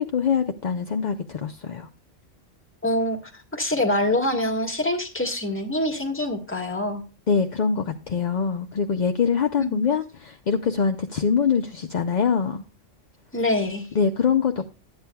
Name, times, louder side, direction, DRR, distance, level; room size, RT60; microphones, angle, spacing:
voice 1, 0.0-1.9 7.3-12.6 13.9-14.7, left 6 dB, 50° left, 6 dB, 0.5 m, -24 dB
voice 2, 2.8-7.0 9.6-9.9 13.3-13.9, left 1 dB, 10° left, 1 dB, 1.4 m, -25 dB
13.0 x 9.0 x 2.3 m, 0.32 s
omnidirectional pair, 1.3 m